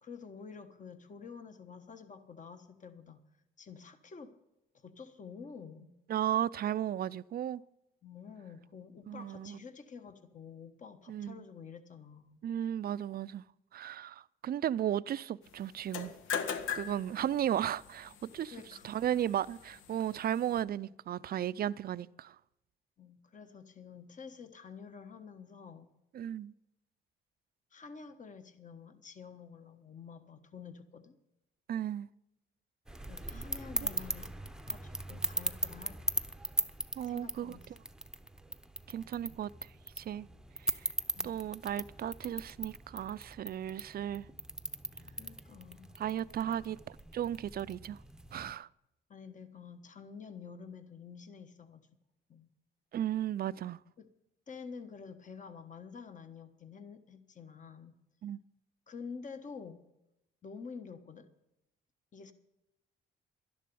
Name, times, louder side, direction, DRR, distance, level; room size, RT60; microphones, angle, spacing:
voice 1, 0.0-3.2 3.6-4.3 4.7-5.9 8.0-12.4 18.5-18.9 23.0-25.9 27.7-31.2 33.1-36.4 37.1-37.7 41.1-41.4 45.1-45.9 46.4-46.6 49.1-51.9 52.3-52.5 54.0-54.1 54.5-58.0 58.9-59.8 60.4-61.3 62.1-62.3, left 5 dB, 40° left, 1.3 m, -49 dB
voice 2, 6.1-7.6 9.1-9.6 11.1-11.5 12.4-13.4 13.7-16.1 16.7-18.5 18.8-22.4 26.1-26.5 31.7-32.1 33.3-33.4 37.0-37.6 38.9-39.7 40.0-40.3 40.6-40.7 41.2-44.3 46.0-46.8 47.1-48.0 48.3-48.7 52.9-53.8 58.2-58.4, right 10 dB, 50° right, 0.5 m, -35 dB
sound 1, 15.8-20.6, left 7 dB, 85° left, 1.1 m, -41 dB
sound 2, 32.9-48.5, right 1 dB, 5° right, 0.8 m, -39 dB
12.5 x 11.0 x 7.0 m
cardioid pair, 90°, 20 cm